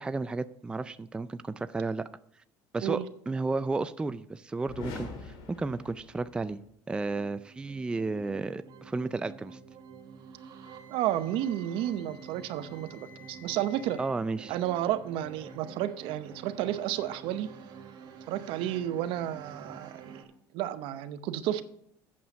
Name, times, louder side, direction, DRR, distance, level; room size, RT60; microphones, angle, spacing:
voice 1, 0.0-2.1 2.7-3.0 3.3-6.6 6.9-9.6 14.0-14.6, right 3 dB, 10° right, 13 dB, 0.3 m, -33 dB
sound 1, 4.6-6.7, left 3 dB, 65° left, 2.1 m, -43 dB
sound 2, 7.0-20.2, right 6 dB, 50° right, 1.6 m, -49 dB
Wind instrument woodwind instrument, 10.6-14.1, left 4 dB, 40° left, 3.8 m, -55 dB
voice 2, 10.9-14.0 14.5-17.5 18.3-20.2 20.5-21.6, right 12 dB, 70° right, 12 dB, 0.7 m, -31 dB
8.6 x 7.3 x 5.3 m, 0.71 s
cardioid pair, 115°, 9 cm